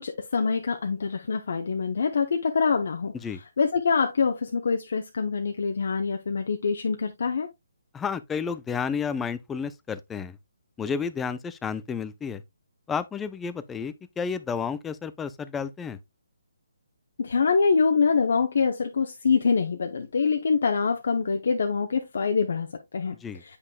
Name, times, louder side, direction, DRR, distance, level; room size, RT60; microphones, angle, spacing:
voice 1, 0.0-7.5 17.2-23.6, left 5 dB, 65° left, 0.8 m, -25 dB
voice 2, 7.9-10.4 10.8-12.4 12.9-16.0 23.2-23.4, left 6 dB, 10° left, 0.4 m, -31 dB
8.2 x 5.4 x 2.2 m
figure-of-eight pair, 145°, 0 cm